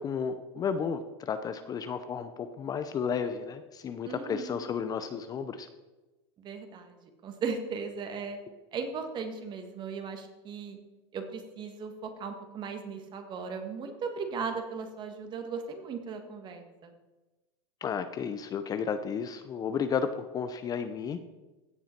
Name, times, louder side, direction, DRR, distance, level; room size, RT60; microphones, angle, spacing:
voice 1, 0.0-5.7 17.8-21.2, left 6 dB, 25° left, 10 dB, 0.6 m, -33 dB
voice 2, 4.0-4.6 6.4-8.4 8.7-10.8 11.1-16.9, right 5 dB, 35° right, 6 dB, 1.7 m, -37 dB
16.0 x 5.6 x 4.4 m, 1.1 s
supercardioid pair, 120°, 14 cm